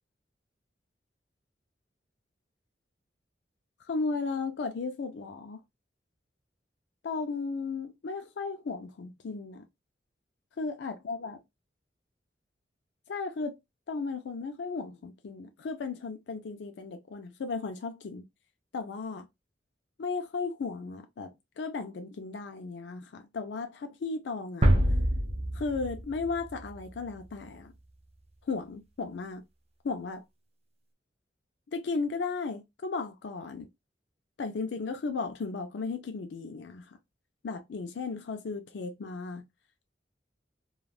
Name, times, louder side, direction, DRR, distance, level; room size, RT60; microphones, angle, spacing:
voice 1, 3.9-5.6 7.0-9.6 10.6-11.4 13.1-13.6 13.9-18.2 18.7-19.3 20.0-24.7 25.5-27.7 28.5-29.4 29.8-30.2 31.7-33.7 34.4-37.0 37.4-39.5, left 4 dB, 85° left, 0.4 m, -35 dB
sound 1, 24.6-27.5, right 1 dB, 35° right, 0.6 m, -26 dB
3.3 x 2.3 x 2.3 m
head